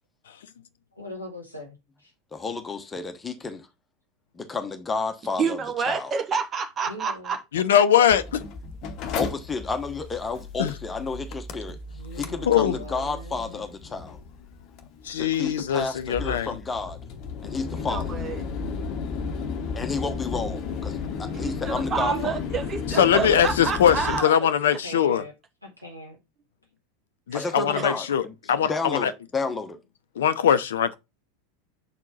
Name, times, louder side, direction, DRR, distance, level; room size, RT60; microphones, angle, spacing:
voice 1, 0.9-2.1 6.9-7.4 11.8-13.7 21.9-22.3 24.8-25.3 25.8-26.2, equal, 90° right, 2.3 m, -40 dB
voice 2, 2.3-3.7 4.3-5.6 5.9-6.1 9.2-11.8 12.2-14.2 15.1-17.0 17.4-18.1 19.8-22.4 27.3-28.3 28.6-29.8, left 4 dB, 15° left, 1.1 m, -31 dB
voice 3, 5.4-7.4 17.7-18.4 21.3-24.5 27.3-27.8, right 5 dB, 25° right, 1.3 m, -29 dB
voice 4, 7.5-8.4 10.6-10.7 12.5-12.8 15.1-16.5 23.0-25.2 27.3-28.2 28.5-29.1 30.2-31.0, left 9 dB, 60° left, 0.6 m, -21 dB
Mechanical fan, 8.1-24.2, left 5 dB, 40° left, 0.9 m, -34 dB
6.8 x 4.5 x 4.0 m
figure-of-eight pair, 85°, 0 cm